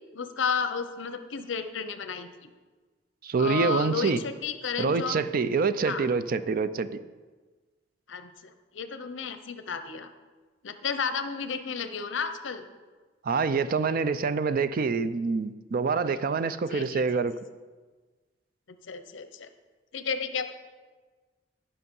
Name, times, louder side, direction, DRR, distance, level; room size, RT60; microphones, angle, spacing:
voice 1, 0.0-2.5 3.4-5.2 5.9-6.1 8.1-10.1 10.6-12.7 16.7-17.0 18.9-19.5 19.9-20.6, left 5 dB, 75° left, 10 dB, 0.7 m, -32 dB
voice 2, 3.2-4.2 4.8-6.9 13.2-17.3, right 4 dB, 50° right, 13 dB, 0.4 m, -26 dB
11.0 x 5.6 x 5.4 m, 1.4 s
head